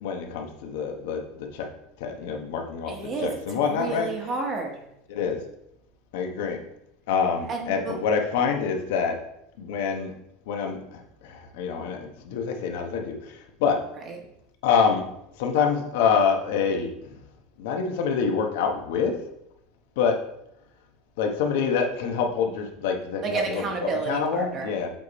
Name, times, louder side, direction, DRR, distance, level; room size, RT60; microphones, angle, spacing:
voice 1, 0.0-1.7 2.0-2.9 3.2-4.1 5.1-5.4 6.1-6.6 7.1-9.2 9.6-10.1 10.5-13.8 14.6-15.0 15.4-16.9 17.6-19.2 20.0-20.2 21.2-23.4 24.1-24.9, left 6 dB, 75° left, 3 dB, 1.0 m, -26 dB
voice 2, 2.9-4.8 7.5-8.0 14.0-14.2 23.2-24.7, right 4 dB, 30° right, 2 dB, 1.0 m, -31 dB
7.5 x 3.3 x 4.2 m, 0.79 s
supercardioid pair, 155°, 0 cm